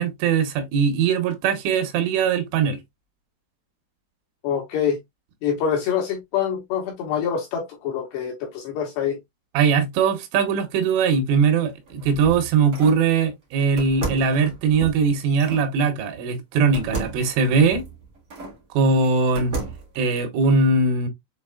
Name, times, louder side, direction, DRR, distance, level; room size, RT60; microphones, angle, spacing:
voice 1, 0.0-2.8 9.5-17.8 18.7-19.5 20.0-21.1, right 5 dB, 80° right, 3.2 m, -20 dB
voice 2, 4.4-5.0 5.4-9.2, left 8 dB, 75° left, 2.7 m, -25 dB
sound 1, 11.7-13.1 13.8-15.7 16.7-18.6 19.0-20.0, right 3 dB, 60° right, 1.1 m, -33 dB
7.4 x 2.9 x 2.3 m
omnidirectional pair, 5.8 m